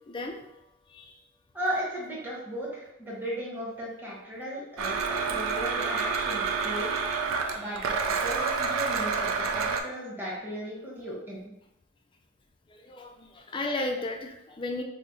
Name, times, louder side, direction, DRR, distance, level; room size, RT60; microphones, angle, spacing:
voice 1, 0.1-0.5 0.9-1.2 5.3-5.5 7.4-7.8 12.7-14.8, left 2 dB, 25° left, 3 dB, 0.3 m, -35 dB
voice 2, 1.5-6.9 7.5-7.9 8.2-11.4, equal, 10° right, -7 dB, 0.9 m, -36 dB
Domestic sounds home sounds, 4.8-9.8, right 5 dB, 85° right, 0.4 m, -28 dB
2.8 x 2.1 x 3.8 m, 0.87 s
head